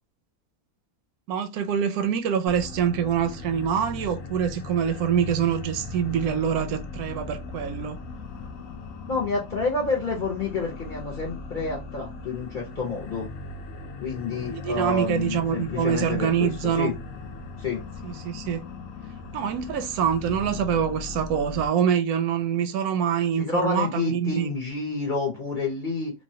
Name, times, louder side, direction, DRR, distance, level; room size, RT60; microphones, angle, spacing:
voice 1, 1.3-8.0 14.4-16.9 18.0-18.7 19.3-24.5, right 8 dB, 80° right, 1.0 m, -25 dB
sound 1, 2.5-21.7, left 3 dB, 70° left, 0.9 m, -38 dB
voice 2, 9.1-13.3 14.0-16.9 17.6-17.8 23.4-26.1, left 3 dB, 45° left, 0.7 m, -29 dB
3.1 x 2.2 x 2.7 m
omnidirectional pair, 1.5 m